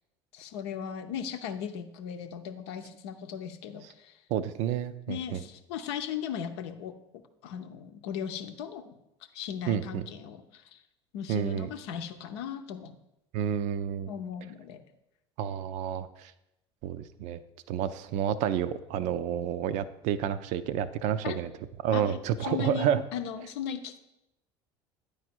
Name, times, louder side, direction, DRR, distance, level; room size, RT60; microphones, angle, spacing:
voice 1, 0.3-4.2 5.1-6.9 7.4-9.0 9.3-10.8 11.1-13.0 14.1-14.8 21.2-21.4 21.9-24.0, left 8 dB, 65° left, 8 dB, 0.7 m, -37 dB
voice 2, 4.3-5.4 9.7-10.1 11.3-11.7 13.3-14.1 15.4-16.3 16.8-17.4 17.7-21.5 21.8-23.0, right 9 dB, 55° right, 13 dB, 0.5 m, -30 dB
8.9 x 4.9 x 4.4 m, 0.88 s
figure-of-eight pair, 65°, 15 cm